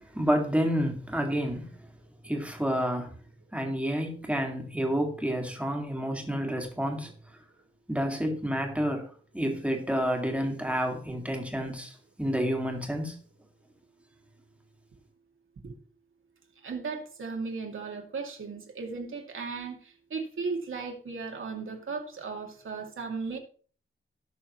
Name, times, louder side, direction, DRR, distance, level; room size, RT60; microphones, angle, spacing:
voice 1, 0.0-1.7 2.2-3.1 3.5-7.1 7.9-13.2, equal, 5° right, 2.1 m, -29 dB
voice 2, 16.6-23.4, right 4 dB, 75° right, 2.3 m, -36 dB
18.0 x 6.3 x 3.1 m
wide cardioid pair, 165°, 21 cm